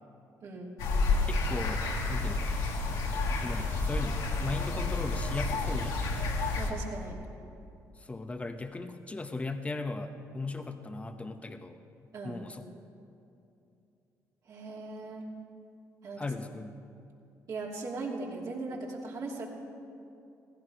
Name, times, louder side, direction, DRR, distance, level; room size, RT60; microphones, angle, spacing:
voice 1, 0.4-0.8 6.6-7.2 12.1-12.4 14.5-15.3 16.0-16.3 17.5-19.5, right 3 dB, 60° right, -3 dB, 2.9 m, -38 dB
sound 1, 0.8-6.7, left 3 dB, 85° left, 1.9 m, -30 dB
voice 2, 1.3-1.8 2.1-2.6 3.4-6.0 8.0-12.6 16.2-16.7, left 3 dB, 20° left, 7 dB, 0.9 m, -38 dB
16.0 x 15.5 x 5.1 m, 2.6 s
cardioid pair, 75°, 7 cm